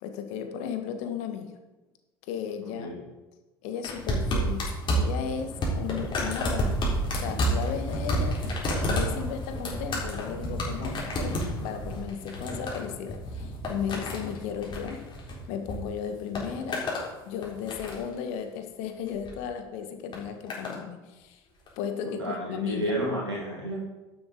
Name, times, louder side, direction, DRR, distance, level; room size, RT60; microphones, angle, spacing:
voice 1, 0.0-1.5 2.3-2.9 3.6-6.8 7.1-8.5 8.8-11.4 11.6-15.0 15.5-16.8 17.2-21.4 21.8-22.9, left 8 dB, 55° left, 6 dB, 1.7 m, -35 dB
voice 2, 2.6-3.0 22.0-23.8, right 1 dB, 90° right, -5 dB, 2.3 m, -31 dB
sound 1, 3.8-15.8 16.1-17.1 17.4-18.1 19.1-19.4 20.1-20.8 21.7-21.8, equal, 35° left, 4.0 m, -30 dB
11.5 x 10.5 x 4.0 m, 1.1 s
figure-of-eight pair, 65°, 13 cm